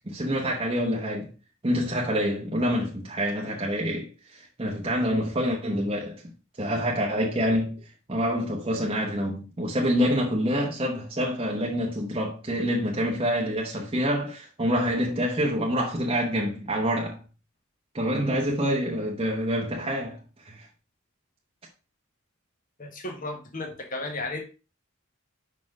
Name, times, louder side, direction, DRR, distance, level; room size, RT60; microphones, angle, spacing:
voice 1, 0.1-1.3 1.6-6.2 6.6-7.8 8.1-17.2 17.9-20.2 20.5-20.7, equal, 25° right, 1.0 m, -27 dB
voice 2, 22.8-24.4, left 2 dB, 40° left, 1.4 m, -34 dB
5.6 x 4.4 x 4.7 m
head